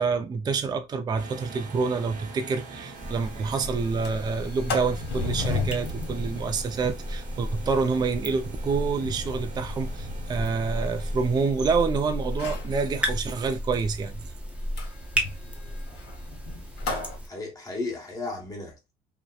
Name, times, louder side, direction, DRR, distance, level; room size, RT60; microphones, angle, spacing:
voice 1, 0.0-14.2, right 5 dB, 25° right, 0.4 m, -27 dB
sound 1, 1.2-11.5, right 3 dB, 50° right, 0.8 m, -44 dB
Sliding door, 2.3-2.4 2.7-2.8 3.2-3.5 3.8-11.8 12.3-12.8 14.8-17.2, left 3 dB, 80° left, 1.0 m, -36 dB
sound 2, 2.9-17.3, equal, 5° right, 0.7 m, -34 dB
voice 2, 17.2-18.9, left 3 dB, 20° left, 1.1 m, -34 dB
2.7 x 2.1 x 2.3 m
cardioid pair, 110°, 17 cm